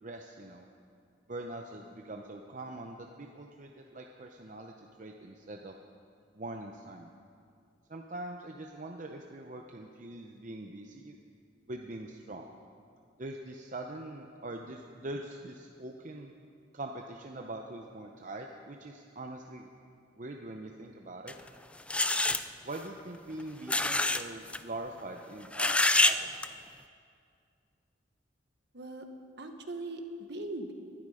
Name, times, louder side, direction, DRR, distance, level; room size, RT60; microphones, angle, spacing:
voice 1, 0.0-0.7 1.3-5.7 6.3-7.1 7.9-11.2 11.7-12.5 13.2-16.3 16.7-19.7 20.2-21.3 22.6-26.3, right 2 dB, 40° right, 2 dB, 0.8 m, -43 dB
sound 1, 21.3-21.4 21.9-22.4 23.7-24.2 24.5-24.6 25.5-26.2 26.4-26.5, left 2 dB, 5° left, 0.3 m, -26 dB
voice 2, 28.7-29.0 29.4-30.7, right 2 dB, 60° right, 5 dB, 1.4 m, -40 dB
20.5 x 12.5 x 5.0 m, 2.3 s
head